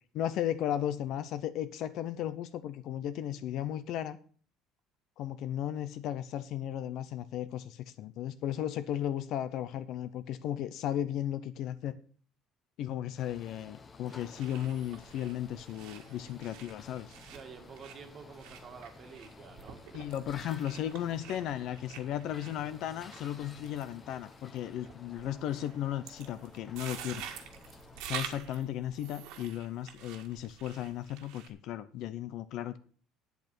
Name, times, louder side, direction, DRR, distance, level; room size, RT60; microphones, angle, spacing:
voice 1, 0.1-4.2 5.2-12.0 12.8-17.1 19.9-27.2 28.0-32.8, left 11 dB, 50° left, 13 dB, 0.7 m, -35 dB
sound 1, 13.2-28.0, left 3 dB, 20° left, 0.9 m, -53 dB
sound 2, 14.1-31.5, right 9 dB, 75° right, 1.8 m, -48 dB
voice 2, 17.3-19.8, right 6 dB, 30° right, 6 dB, 1.7 m, -49 dB
9.1 x 8.1 x 6.1 m, 0.43 s
cardioid pair, 170°, 0 cm